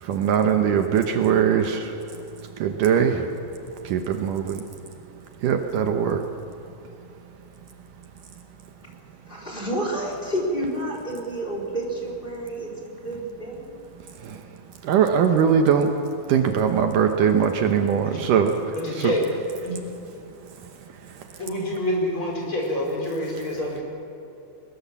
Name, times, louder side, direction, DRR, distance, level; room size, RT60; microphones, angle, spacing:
voice 1, 0.0-1.9 2.6-3.3 3.8-4.6 5.4-6.2 14.2-14.4 14.8-15.9 16.3-18.5, right 7 dB, 70° right, 5 dB, 2.5 m, -21 dB
voice 2, 9.3-13.8, right 1 dB, 15° left, -1 dB, 3.6 m, -30 dB
voice 3, 18.8-19.2 19.6-19.8 21.4-23.8, left 1 dB, 35° left, -2 dB, 5.9 m, -27 dB
21.5 x 21.0 x 7.3 m, 2.9 s
omnidirectional pair, 4.1 m